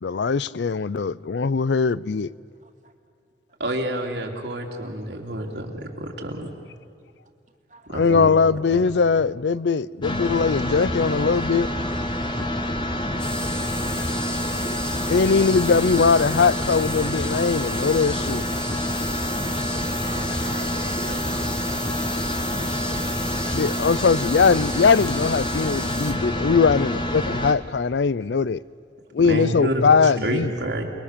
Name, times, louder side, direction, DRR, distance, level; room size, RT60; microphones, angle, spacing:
voice 1, 0.0-2.3 7.9-11.7 15.1-18.5 23.5-28.6 29.1-30.5, left 5 dB, 80° left, 0.5 m, -20 dB
voice 2, 2.6-2.9 4.6-4.7 5.4-5.5 7.7-7.9 14.7-14.8 19.9-21.7, right 2 dB, 45° right, 2.1 m, -43 dB
voice 3, 3.6-6.3 7.9-8.3 8.7-8.8 29.2-30.8, right 1 dB, 80° right, 3.1 m, -28 dB
sound 1, 10.0-27.5, equal, 25° left, 1.3 m, -27 dB
sound 2, 13.2-26.1, equal, 5° left, 1.8 m, -34 dB
29.0 x 21.5 x 6.8 m
head